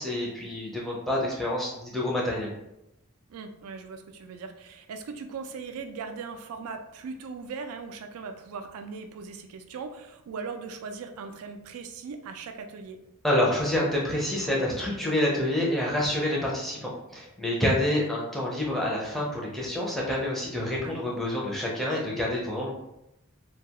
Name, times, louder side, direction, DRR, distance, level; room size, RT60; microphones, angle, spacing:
voice 1, 0.0-2.5 13.2-22.7, left 1 dB, ahead, -4 dB, 0.4 m, -27 dB
voice 2, 3.3-13.0 17.8-18.0 20.8-20.9, right 5 dB, 80° right, 6 dB, 0.3 m, -39 dB
2.3 x 2.2 x 2.8 m, 0.86 s
head